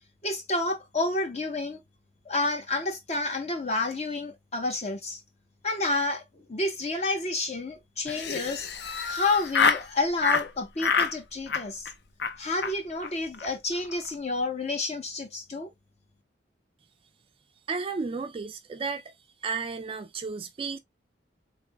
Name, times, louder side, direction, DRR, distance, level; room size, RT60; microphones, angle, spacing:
voice 1, 0.2-1.8 2.2-5.2 5.6-8.7 9.1-11.9 12.4-15.7, left 2 dB, 35° left, 1.0 m, -30 dB
Laughter, 8.1-9.9 10.2-10.5 10.8-11.1 11.5-11.9 12.2-12.3 12.6-12.7 13.0-13.1 13.3-13.5 13.8-14.1, left 5 dB, 60° left, 0.6 m, -27 dB
voice 2, 17.7-19.1 19.4-20.8, right 4 dB, 30° right, 0.3 m, -33 dB
3.8 x 3.4 x 2.2 m
head